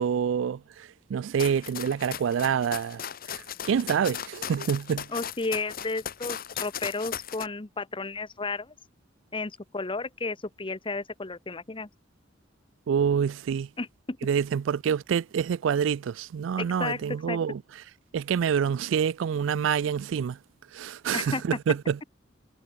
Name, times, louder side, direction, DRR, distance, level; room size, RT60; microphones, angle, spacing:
voice 1, 0.0-3.0 3.3-5.1 12.9-13.7 14.2-17.6 18.1-20.4 20.7-22.0, right 7 dB, 75° right, 0.3 m, -27 dB
sound 1, 1.4-7.5, left 9 dB, 50° left, 1.0 m, -37 dB
voice 2, 5.1-8.7 9.3-11.9 13.8-14.2 16.6-17.4 21.1-21.4, left 3 dB, 25° left, 1.0 m, -33 dB
head